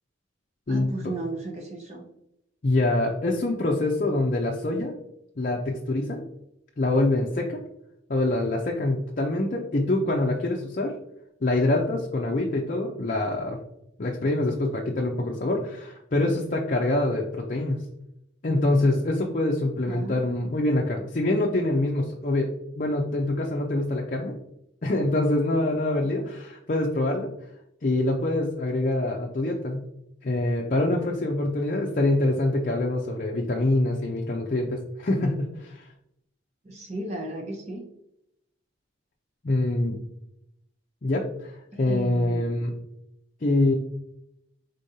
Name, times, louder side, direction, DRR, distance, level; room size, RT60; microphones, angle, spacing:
voice 1, 0.7-2.0 19.9-20.4 26.2-26.3 36.6-37.9 41.7-42.4, right 2 dB, 35° right, 1 dB, 0.7 m, -35 dB
voice 2, 2.6-4.9 5.4-6.2 6.8-7.6 8.1-10.9 11.4-13.6 14.0-17.8 18.4-22.5 22.7-24.3 24.8-27.3 27.8-29.8 30.2-35.9 39.4-40.0 41.0-42.7 43.4-43.8, left 2 dB, 45° left, -1 dB, 0.5 m, -25 dB
5.0 x 3.8 x 2.7 m, 0.79 s
head